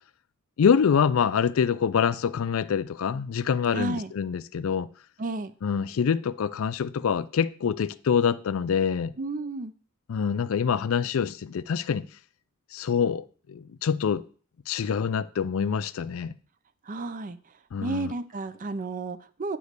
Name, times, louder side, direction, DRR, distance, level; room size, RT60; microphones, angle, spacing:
voice 1, 0.6-4.9 5.6-9.1 10.1-12.1 12.7-14.2 14.7-16.3 17.7-18.1, left 7 dB, 70° left, 0.4 m, -25 dB
voice 2, 3.7-4.1 5.2-5.5 9.2-9.7 16.9-17.4 17.8-19.6, right 3 dB, 40° right, 0.5 m, -32 dB
9.4 x 3.1 x 6.6 m
head